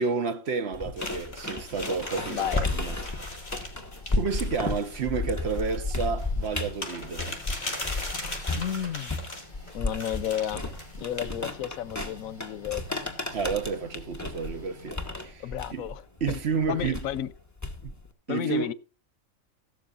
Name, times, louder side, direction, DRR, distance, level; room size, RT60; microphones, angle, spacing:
voice 1, 0.0-3.0 4.2-7.3 13.3-15.4 15.7-15.9 16.2-17.0 17.8-17.9 18.3-18.7, right 5 dB, 55° right, 1.1 m, -30 dB
sound 1, 0.7-8.1 8.5-18.1, left 2 dB, 10° left, 1.6 m, -33 dB
sound 2, 1.0-9.5 9.9-11.0, left 2 dB, 60° left, 4.1 m, -39 dB
Printer, 1.7-17.5, left 1 dB, 35° left, 5.3 m, -50 dB
voice 2, 2.3-2.7 8.5-9.2 9.7-13.1 15.4-16.4 16.7-17.3 18.3-18.7, left 10 dB, 85° left, 1.1 m, -32 dB
15.5 x 13.0 x 2.5 m
omnidirectional pair, 1.4 m